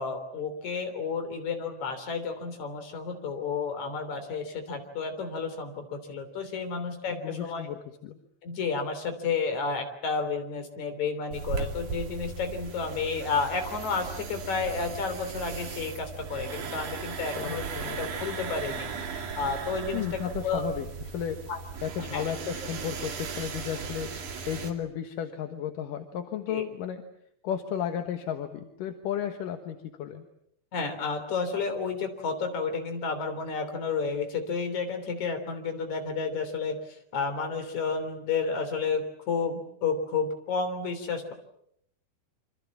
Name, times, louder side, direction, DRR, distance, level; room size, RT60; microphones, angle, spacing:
voice 1, 0.0-7.7 8.4-17.6 18.0-20.6 21.5-21.6 22.0-22.2 26.5-26.6 30.7-41.3, left 5 dB, 45° left, 7 dB, 4.4 m, -31 dB
voice 2, 7.1-8.2 17.3-18.0 19.9-21.4 21.8-27.0 27.4-30.3, left 9 dB, 65° left, 6 dB, 2.6 m, -34 dB
sound 1, 11.3-24.7, right 5 dB, 50° right, 3.8 m, -37 dB
27.5 x 26.0 x 7.3 m, 0.73 s
omnidirectional pair, 4.9 m